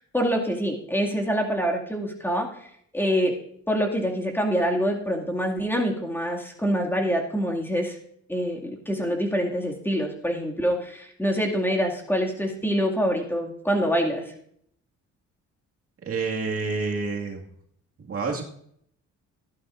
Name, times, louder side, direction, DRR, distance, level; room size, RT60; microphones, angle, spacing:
voice 1, 0.1-2.5 2.9-3.3 3.7-8.0 8.3-14.3, equal, 5° left, 0 dB, 2.2 m, -25 dB
voice 2, 16.0-17.4 18.0-18.4, right 4 dB, 50° right, 0 dB, 2.1 m, -28 dB
14.5 x 11.5 x 2.6 m, 0.68 s
cardioid pair, 90°, 30 cm